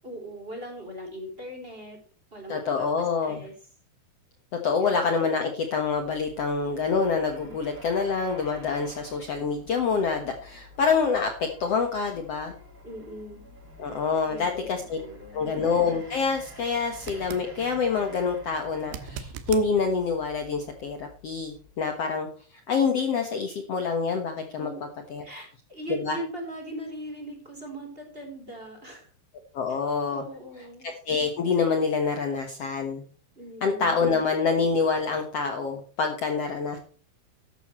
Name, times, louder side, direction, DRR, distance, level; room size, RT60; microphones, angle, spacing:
voice 1, 0.0-2.0 2.3-3.5 4.8-4.9 7.4-7.5 12.8-13.5 14.2-15.4 24.6-24.8 25.2-29.1 29.7-29.8 30.1-30.9 33.3-34.0, right 1 dB, 15° right, 3 dB, 3.3 m, -40 dB
voice 2, 2.5-3.4 4.6-12.5 13.8-15.0 15.3-22.3 22.7-24.7 25.1-25.2 26.0-26.2 29.5-30.2 31.1-33.0 33.6-36.8, left 5 dB, 75° left, 4 dB, 1.4 m, -26 dB
sound 1, 5.7-22.1, equal, 30° right, 5.9 m, -49 dB
sound 2, 16.9-17.5 18.8-19.7 22.7-22.8, right 9 dB, 80° right, 3.4 m, -39 dB
13.5 x 12.0 x 3.1 m, 0.41 s
omnidirectional pair, 5.1 m